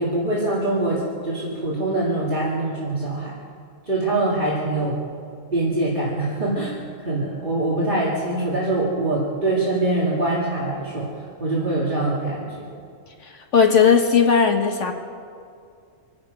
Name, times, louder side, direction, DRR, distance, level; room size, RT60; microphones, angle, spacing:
voice 1, 0.0-3.3 3.9-5.0 5.5-12.7, right 2 dB, 40° right, -6 dB, 2.3 m, -24 dB
voice 2, 13.2-14.9, left 6 dB, 70° left, 4 dB, 1.4 m, -17 dB
26.5 x 9.6 x 5.3 m, 2.3 s
omnidirectional pair, 1.3 m